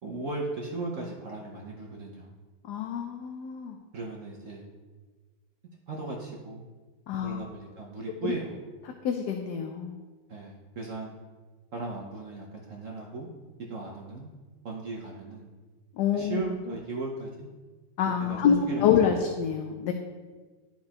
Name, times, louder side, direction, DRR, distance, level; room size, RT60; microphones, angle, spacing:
voice 1, 0.0-2.3 3.9-4.6 5.9-6.6 7.2-8.6 10.3-11.1 11.7-13.3 13.7-14.3 14.6-15.5 16.1-17.5 18.2-19.3, right 3 dB, 55° right, -2 dB, 1.0 m, -37 dB
voice 2, 2.7-3.8 7.1-7.5 8.2-8.3 9.0-9.9 15.9-16.8 18.0-19.9, left 8 dB, 70° left, 3 dB, 1.1 m, -27 dB
11.5 x 4.4 x 2.9 m, 1.4 s
omnidirectional pair, 2.0 m